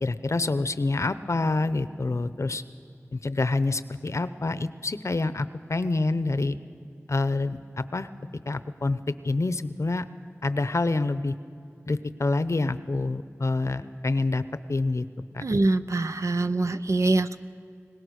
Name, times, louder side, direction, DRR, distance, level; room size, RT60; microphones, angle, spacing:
voice 1, 0.0-2.6 3.1-6.6 7.1-8.1 8.5-10.0 10.4-11.3 11.9-14.4 14.7-15.1 15.3-15.4, left 3 dB, 65° left, 13 dB, 0.8 m, -27 dB
voice 2, 15.4-17.4, right 2 dB, 75° right, 10 dB, 0.6 m, -24 dB
22.5 x 19.5 x 6.5 m, 2.5 s
wide cardioid pair, 45°, 5 cm